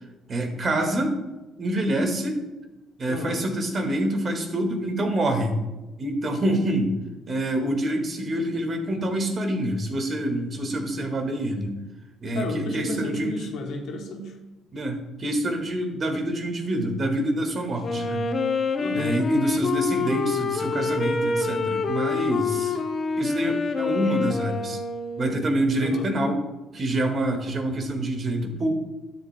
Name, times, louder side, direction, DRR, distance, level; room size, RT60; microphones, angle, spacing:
voice 1, 0.3-1.2 1.6-2.4 3.0-5.6 6.0-6.9 7.3-11.8 12.2-13.4 14.7-18.2 18.9-22.8 23.2-24.8 25.2-26.4 26.7-28.7, right 1 dB, 45° right, 4 dB, 1.7 m, -26 dB
voice 2, 3.1-3.4 12.3-14.4 18.8-19.1 25.8-26.1, left 3 dB, 70° left, 2 dB, 1.3 m, -32 dB
Wind instrument woodwind instrument, 17.8-25.5, left 4 dB, 45° left, 0.8 m, -27 dB
12.0 x 7.4 x 2.2 m, 1.0 s
hypercardioid pair, 55°, 0 cm